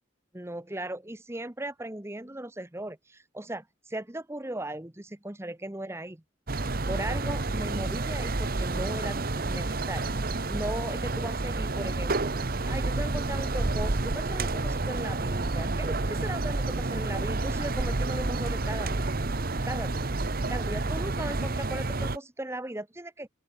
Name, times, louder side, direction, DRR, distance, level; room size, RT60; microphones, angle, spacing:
voice 1, 0.3-6.2 6.9-10.0 10.5-12.3 12.7-19.1 19.6-20.1 20.5-23.3, right 1 dB, 15° right, 0.9 m, -37 dB
sound 1, 6.5-22.2, right 2 dB, 45° right, 1.1 m, -29 dB
sound 2, 9.7-19.7, equal, 20° left, 4.2 m, -55 dB
open air
head